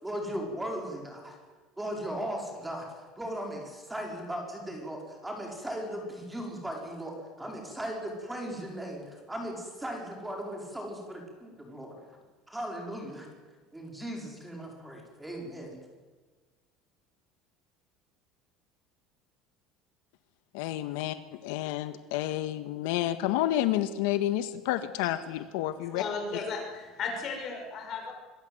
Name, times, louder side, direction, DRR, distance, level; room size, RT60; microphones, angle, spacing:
voice 1, 0.0-1.3 1.8-12.0 12.5-13.3 13.7-15.8, equal, 5° right, 0 dB, 5.0 m, -37 dB
voice 2, 20.5-21.2 21.4-26.0, left 13 dB, 85° left, 10 dB, 1.5 m, -30 dB
voice 3, 25.8-28.1, left 4 dB, 30° left, 2 dB, 6.1 m, -35 dB
25.5 x 23.0 x 8.0 m, 1.4 s
cardioid pair, 180°, 0 cm